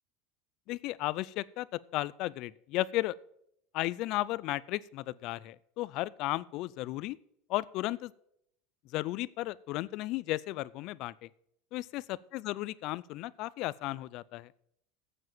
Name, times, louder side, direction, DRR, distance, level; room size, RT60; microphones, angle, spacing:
voice 1, 0.7-3.2 3.7-7.2 7.5-8.1 8.9-11.3 11.7-14.5, left 17 dB, 50° left, 21 dB, 0.4 m, -34 dB
8.0 x 7.7 x 7.2 m, 0.73 s
supercardioid pair, 140°, 0 cm